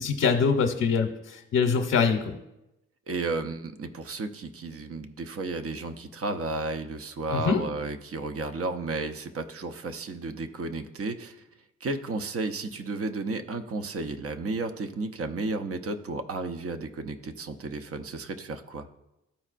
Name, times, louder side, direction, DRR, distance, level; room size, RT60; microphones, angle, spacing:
voice 1, 0.0-2.3 7.3-7.6, left 5 dB, 60° left, 3 dB, 0.8 m, -24 dB
voice 2, 3.1-11.4 11.8-18.9, right 3 dB, 50° right, 8 dB, 0.8 m, -33 dB
13.0 x 4.4 x 2.5 m, 0.91 s
cardioid pair, 70°, 30 cm